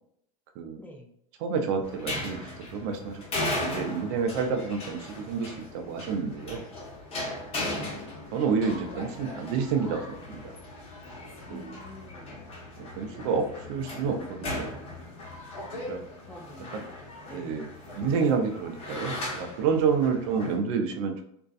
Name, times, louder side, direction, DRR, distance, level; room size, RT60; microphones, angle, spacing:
voice 1, 0.8-1.1 7.6-8.0 11.5-12.4 16.3-16.8 17.0-17.6 20.3-20.7, left 1 dB, 10° left, 1 dB, 0.4 m, -47 dB
voice 2, 1.4-6.6 7.6-8.0 8.3-10.5 11.5-11.8 12.8-14.8 15.9-16.0 16.7-16.8 17.3-21.2, right 5 dB, 65° right, 4 dB, 0.5 m, -29 dB
sound 1, 1.8-20.6, left 2 dB, 35° left, 1.0 m, -38 dB
2.5 x 2.2 x 2.4 m, 0.73 s
supercardioid pair, 110°, 18 cm